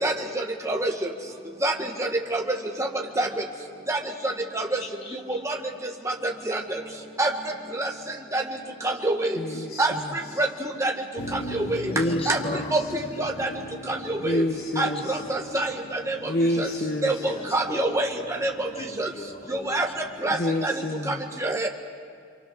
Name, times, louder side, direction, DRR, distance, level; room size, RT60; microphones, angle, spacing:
voice 1, 0.0-1.1 1.6-2.9 3.2-3.4 3.9-4.8 5.1-5.6 5.8-6.8 7.2-8.4 8.8-9.4 9.8-10.9 11.3-11.9 12.2-12.4 12.7-12.8 13.2-13.5 13.8-14.4 14.8-16.3 16.6-16.7 17.0-18.7 19.0-19.1 19.5-21.7, right 2 dB, 15° right, 1 dB, 1.8 m, -27 dB
voice 2, 4.8-5.4 11.8-13.0 14.8-15.5 17.2-18.0 18.7-19.8 20.2-20.6, left 2 dB, 30° left, 8 dB, 1.0 m, -39 dB
voice 3, 9.4-10.0 11.9-12.7 14.2-15.2 16.2-17.1 20.4-21.2, left 1 dB, 45° left, 4 dB, 1.4 m, -27 dB
Motor vehicle (road), 11.2-20.1, left 1 dB, 85° left, 2.8 m, -40 dB
28.0 x 26.0 x 6.4 m, 2.3 s
head